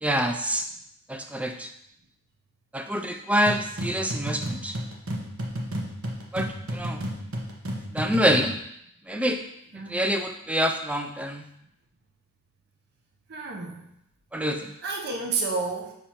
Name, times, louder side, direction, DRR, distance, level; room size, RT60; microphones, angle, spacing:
voice 1, 0.0-0.7 1.1-1.7 2.7-4.8 6.3-7.0 7.9-8.6 9.1-9.4 9.9-11.5 14.3-14.8, equal, 5° right, 6 dB, 0.3 m, -26 dB
sound 1, 3.5-8.6, equal, 70° right, 1.0 m, -32 dB
voice 2, 9.7-10.1 13.3-13.9 14.8-15.9, right 4 dB, 45° right, 0 dB, 0.7 m, -30 dB
6.6 x 5.4 x 2.9 m, 0.77 s
head